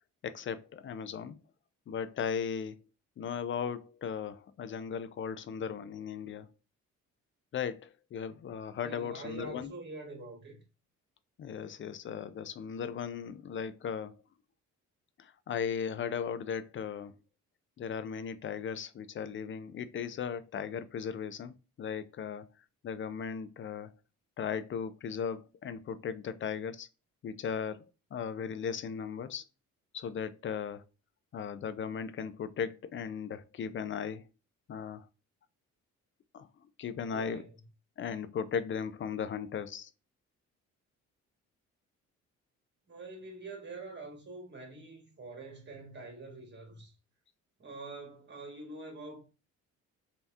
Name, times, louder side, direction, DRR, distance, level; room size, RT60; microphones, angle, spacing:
voice 1, 0.2-1.4 1.9-2.8 3.2-6.5 7.5-9.7 11.4-14.2 15.2-17.1 17.8-22.5 22.8-23.9 24.4-26.9 27.2-29.4 29.9-30.8 31.3-34.2 34.7-35.1 36.3-37.5 38.0-39.9, left 7 dB, 40° left, 0.4 m, -37 dB
voice 2, 8.8-10.6 37.1-37.5 42.9-46.9 47.6-49.3, right 3 dB, 35° right, 1.8 m, -45 dB
3.3 x 2.8 x 2.3 m
supercardioid pair, 70°, 33 cm